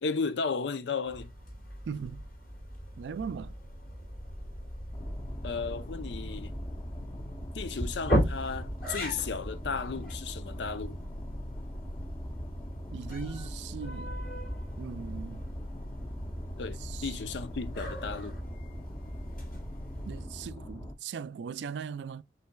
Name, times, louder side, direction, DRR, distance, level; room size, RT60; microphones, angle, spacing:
voice 1, 0.0-1.3 5.4-6.5 7.5-11.0 16.6-18.4, left 5 dB, 85° left, 0.5 m, -34 dB
sound 1, 1.1-20.3, equal, 55° left, 2.8 m, -38 dB
voice 2, 1.9-2.2 3.0-3.5 12.9-14.2 14.8-15.5 16.8-17.1 20.0-22.2, right 6 dB, 75° right, 0.3 m, -39 dB
sound 2, 4.9-20.9, equal, 25° left, 0.7 m, -42 dB
5.5 x 3.9 x 2.2 m
head